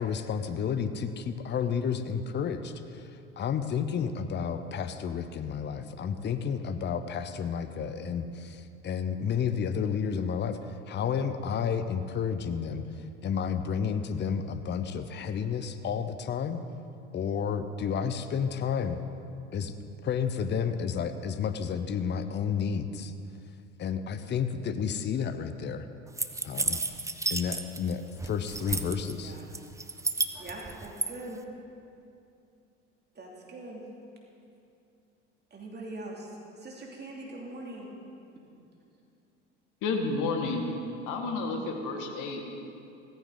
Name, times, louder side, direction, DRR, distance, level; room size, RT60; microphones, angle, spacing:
voice 1, 0.0-10.6 10.9-16.6 17.1-19.0 19.5-19.7 20.0-23.1 23.8-25.9 26.4-26.8 27.3-29.4, left 7 dB, 30° left, 10 dB, 0.8 m, -31 dB
sound 1, 26.2-27.9 28.2-29.1 29.5-31.1, right 3 dB, 10° right, 0.7 m, -31 dB
voice 2, 29.1-29.4 30.4-31.4 33.1-33.8 35.5-36.3 36.6-37.9, right 2 dB, 30° right, -2 dB, 2.9 m, -42 dB
voice 3, 39.8-40.6 41.1-42.6, left 3 dB, 55° left, 3 dB, 2.1 m, -31 dB
16.5 x 14.5 x 4.0 m, 2.6 s
hypercardioid pair, 70°, 36 cm